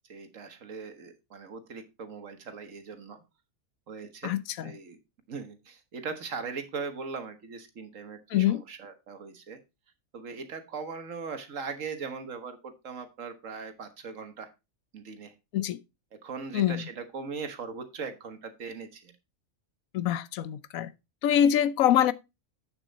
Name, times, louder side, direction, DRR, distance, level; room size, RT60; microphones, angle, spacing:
voice 1, 0.1-3.2 3.9-4.4 4.6-5.0 5.3-9.6 10.1-14.5 14.9-15.3 16.2-19.1, right 5 dB, 70° right, 1.7 m, -39 dB
voice 2, 4.2-4.7 8.3-8.6 15.5-15.8 16.5-16.9 19.9-20.9 21.2-22.1, left 10 dB, 80° left, 1.1 m, -25 dB
8.3 x 6.9 x 4.0 m
omnidirectional pair, 1.4 m